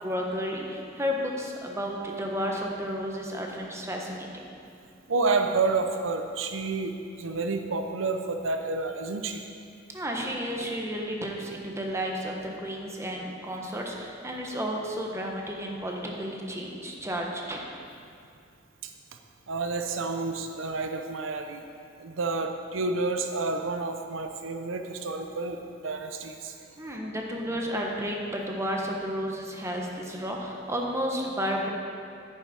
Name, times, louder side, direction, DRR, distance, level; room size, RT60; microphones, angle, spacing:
voice 1, 0.0-4.3 9.9-17.6 26.8-31.7, equal, 15° right, 0 dB, 1.1 m, -32 dB
voice 2, 5.1-6.9 7.2-9.4 18.8-18.9 19.5-21.6 22.0-26.5, right 3 dB, 80° right, 5 dB, 0.7 m, -29 dB
10.5 x 9.6 x 4.2 m, 2.4 s
head